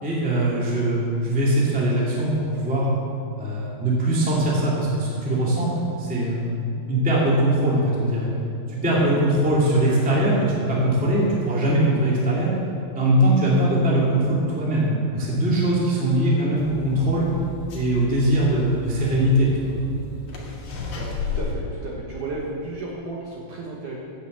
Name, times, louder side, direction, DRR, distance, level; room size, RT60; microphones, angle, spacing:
voice 1, 0.0-2.9 3.4-5.7 6.0-8.3 8.7-12.5 12.9-17.3 17.7-19.8, right 1 dB, 5° right, -6 dB, 1.5 m, -21 dB
sound 1, 16.5-21.6, left 4 dB, 55° left, 2.6 m, -34 dB
voice 2, 21.0-24.0, right 2 dB, 65° right, -3 dB, 2.2 m, -33 dB
8.8 x 8.3 x 8.1 m, 2.6 s
omnidirectional pair, 4.7 m